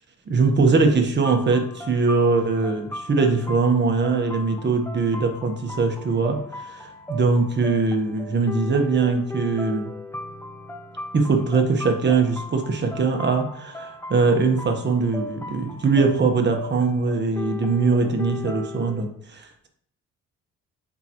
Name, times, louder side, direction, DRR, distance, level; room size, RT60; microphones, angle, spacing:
voice 1, 0.3-9.9 11.1-19.7, right 4 dB, 35° right, 4 dB, 1.2 m, -22 dB
sound 1, 1.2-19.0, left 1 dB, 10° left, 0.8 m, -37 dB
6.8 x 4.8 x 3.0 m, 0.63 s
cardioid pair, 90°, 30 cm